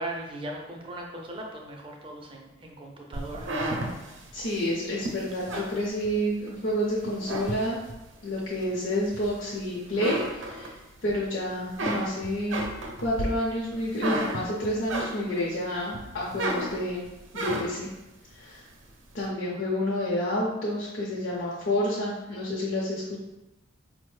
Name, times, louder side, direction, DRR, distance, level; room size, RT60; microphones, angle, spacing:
voice 1, 0.0-3.9, right 1 dB, 25° right, 0 dB, 0.5 m, -39 dB
sound 1, 3.1-6.5 7.0-8.1 8.6-9.6 9.9-11.1 11.5-15.5 15.9-17.9, right 1 dB, 70° right, 0.6 m, -33 dB
voice 2, 4.3-7.8 8.2-10.8 11.0-12.7 13.0-17.0 17.3-17.9 18.3-18.6 19.1-23.2, left 1 dB, 60° left, -6 dB, 0.6 m, -29 dB
4.9 x 2.1 x 3.1 m, 0.98 s
head